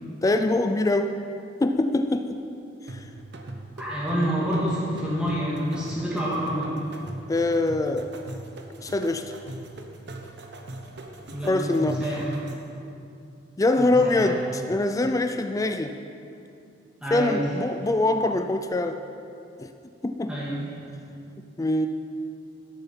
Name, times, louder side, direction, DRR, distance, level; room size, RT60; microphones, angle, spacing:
voice 1, 0.2-1.2 1.6-2.4 2.9-3.0 7.3-8.1 8.8-9.3 11.5-12.0 13.6-16.0 17.1-19.0 19.6-19.7 20.0-20.3 21.6-21.9, left 2 dB, 20° left, 7 dB, 0.4 m, -24 dB
sound 1, 2.9-12.8, right 2 dB, 65° right, 0.9 m, -41 dB
voice 2, 3.8-6.8 11.3-11.5 11.8-12.3 13.8-14.3 17.0-17.4 20.3-20.6, equal, 5° right, -8 dB, 1.8 m, -28 dB
13.0 x 6.9 x 5.8 m, 2.6 s
head